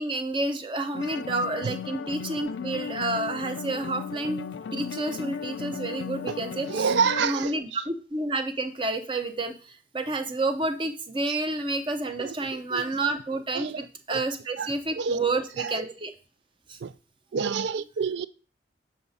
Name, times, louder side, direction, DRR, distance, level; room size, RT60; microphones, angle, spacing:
voice 1, 0.0-6.9 7.2-16.1 16.7-16.8, right 2 dB, 30° right, 0.7 m, -30 dB
sound 1, 0.9-7.3, left 7 dB, 80° left, 0.4 m, -36 dB
voice 2, 6.7-7.8 11.3-11.4 12.2-12.9 13.5-13.9 14.1-14.2 14.6-15.2 15.6-15.8 16.8-16.9 17.3-18.3, right 6 dB, 80° right, 0.4 m, -29 dB
7.3 x 4.9 x 4.0 m
head